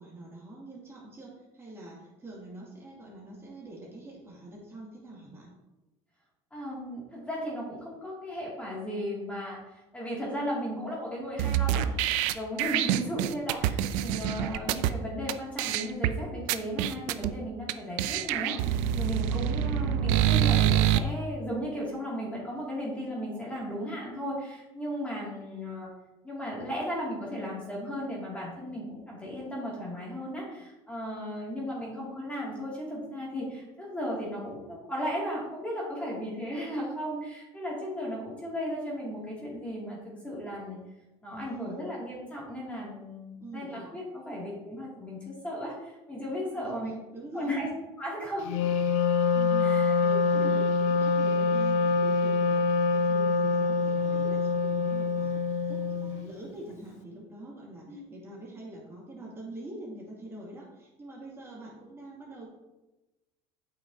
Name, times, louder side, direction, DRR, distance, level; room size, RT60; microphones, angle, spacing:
voice 1, 0.0-5.5 12.7-12.9 31.2-31.5 41.3-41.9 43.4-43.9 46.5-47.5 49.3-62.5, right 1 dB, 20° right, -5 dB, 2.3 m, -44 dB
voice 2, 6.5-12.0 12.3-25.9 26.2-40.8 41.2-46.9 47.3-47.7 48.0-48.7 49.6-49.9 50.3-50.5 57.9-58.0, equal, 10° left, -5 dB, 2.3 m, -36 dB
sound 1, 11.4-14.9 15.3-15.4 15.6-16.1 16.5-17.3 17.7-17.8 18.0-21.0, right 11 dB, 75° right, 0.4 m, -26 dB
Wind instrument woodwind instrument, 48.4-56.3, left 4 dB, 65° left, 0.6 m, -25 dB
8.7 x 5.9 x 2.7 m, 1.0 s
supercardioid pair, 120°, 13 cm